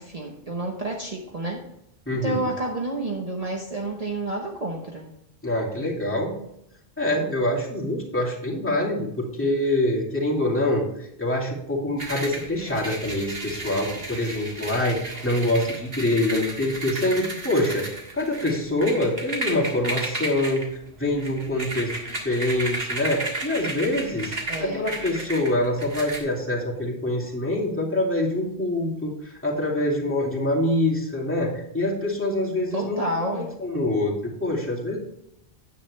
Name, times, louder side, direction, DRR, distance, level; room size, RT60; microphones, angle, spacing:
voice 1, 0.0-1.6 2.2-5.1 24.5-24.9 32.7-33.5, right 1 dB, 35° right, -1 dB, 1.1 m, -29 dB
voice 2, 2.1-2.5 5.4-6.3 7.0-17.9 18.1-20.7 21.0-35.0, left 1 dB, 10° left, -5 dB, 2.4 m, -25 dB
sound 1, 12.0-26.2, right 2 dB, 60° right, 1.9 m, -33 dB
9.7 x 8.4 x 3.2 m, 0.79 s
omnidirectional pair, 1.1 m